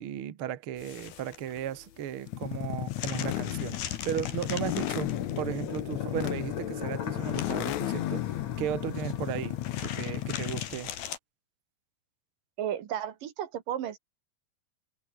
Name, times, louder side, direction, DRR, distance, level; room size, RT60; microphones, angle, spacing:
voice 1, 0.0-10.9, right 10 dB, 55° right, 1.6 m, -36 dB
sound 1, 0.8-11.2, left 10 dB, 90° left, 4.1 m, -43 dB
sound 2, 2.3-10.8, left 14 dB, 65° left, 2.1 m, -34 dB
sound 3, 4.4-10.9, left 7 dB, 50° left, 3.6 m, -41 dB
voice 2, 12.6-14.0, right 10 dB, 70° right, 3.3 m, -33 dB
omnidirectional pair, 4.1 m